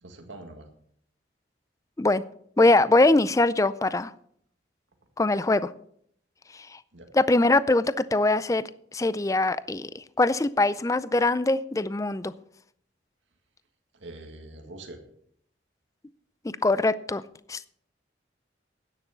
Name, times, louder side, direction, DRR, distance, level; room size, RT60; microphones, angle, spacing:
voice 1, 0.0-0.7 6.9-7.1 14.0-15.0, right 2 dB, 85° right, 4 dB, 1.8 m, -43 dB
voice 2, 2.6-4.1 5.2-5.7 6.7-6.8 7.1-8.6 8.9-12.3 16.4-17.2 17.5-17.6, left 2 dB, 15° left, 16 dB, 0.4 m, -22 dB
11.0 x 9.3 x 5.7 m, 0.67 s
head